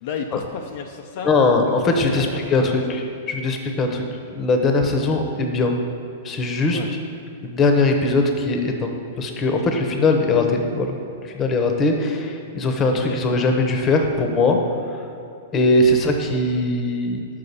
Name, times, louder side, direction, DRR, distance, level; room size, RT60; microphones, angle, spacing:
voice 1, 0.0-1.3 1.8-2.7 6.7-6.9 12.9-13.2, left 6 dB, 55° left, 3 dB, 0.5 m, -32 dB
voice 2, 1.2-4.0 4.3-5.8 6.2-6.8 7.4-8.9 9.2-10.9 11.2-14.6 15.5-17.2, left 2 dB, 25° left, 4 dB, 0.9 m, -20 dB
5.5 x 5.5 x 6.7 m, 2.6 s
hypercardioid pair, 130°, 0 cm